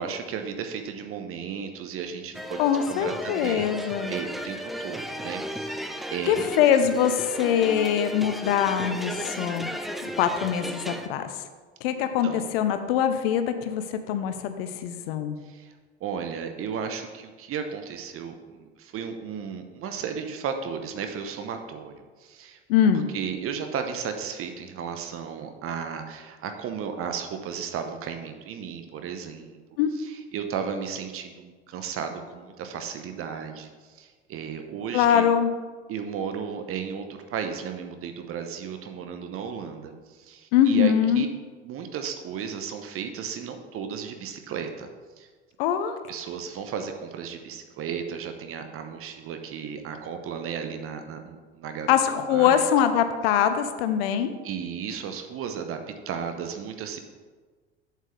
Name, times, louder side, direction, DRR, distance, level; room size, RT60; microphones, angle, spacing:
voice 1, 0.0-2.6 2.9-6.5 11.9-12.5 15.5-15.7 16.0-21.9 22.2-22.6 22.9-29.6 29.9-35.3 35.9-41.3 41.6-44.9 45.2-45.3 46.1-51.9 52.3-52.6 54.4-55.8 56.1-57.0, right 7 dB, 40° right, 6 dB, 1.0 m, -34 dB
sound 1, 2.3-11.1, equal, ahead, 0.4 m, -34 dB
voice 2, 2.6-4.1 6.3-9.7 10.2-11.3 11.8-15.4 22.7-23.1 29.8-29.9 34.9-35.5 40.5-41.2 45.6-46.0 51.9-54.3, left 9 dB, 60° left, 9 dB, 0.7 m, -23 dB
8.4 x 7.4 x 3.3 m, 1.4 s
figure-of-eight pair, 70°, 34 cm